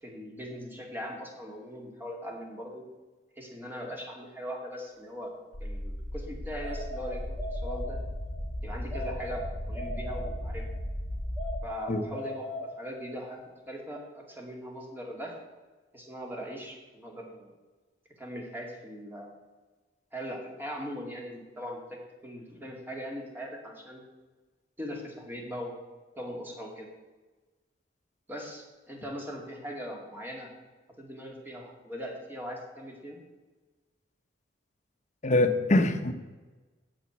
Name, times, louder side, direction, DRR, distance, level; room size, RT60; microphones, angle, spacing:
voice 1, 0.0-2.8 3.4-5.3 5.6-8.0 8.6-10.6 11.6-12.4 12.8-13.4 13.7-15.3 15.9-17.5 18.2-19.3 20.1-24.0 24.8-25.7 26.1-26.9 28.3-30.5 31.0-33.2, equal, 10° right, 0 dB, 2.4 m, -40 dB
sound 1, 5.5-11.7, equal, 60° left, 2.7 m, -36 dB
sound 2, 6.6-8.4 8.9-10.8 11.4-13.2, left 1 dB, 5° left, 1.7 m, -39 dB
voice 2, 35.2-36.1, left 2 dB, 40° left, 7 dB, 0.9 m, -23 dB
8.9 x 7.2 x 8.1 m, 1.2 s
head